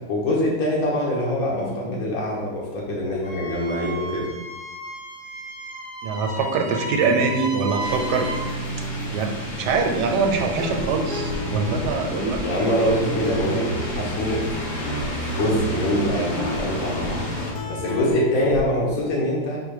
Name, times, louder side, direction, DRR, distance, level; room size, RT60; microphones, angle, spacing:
voice 1, 0.1-4.3 12.4-14.4 15.4-17.2 17.7-19.6, equal, 65° left, -4 dB, 1.4 m, -24 dB
Wind instrument woodwind instrument, 3.2-8.5, right 1 dB, 25° right, 0.5 m, -34 dB
voice 2, 6.0-8.6 9.1-12.4, right 4 dB, 85° right, 3 dB, 1.2 m, -24 dB
sound 1, 7.8-17.5, right 1 dB, 35° left, 0.8 m, -30 dB
Guitar, 10.3-18.6, left 4 dB, 80° left, 1.2 m, -33 dB
5.1 x 2.2 x 4.7 m, 1.2 s
omnidirectional pair, 1.8 m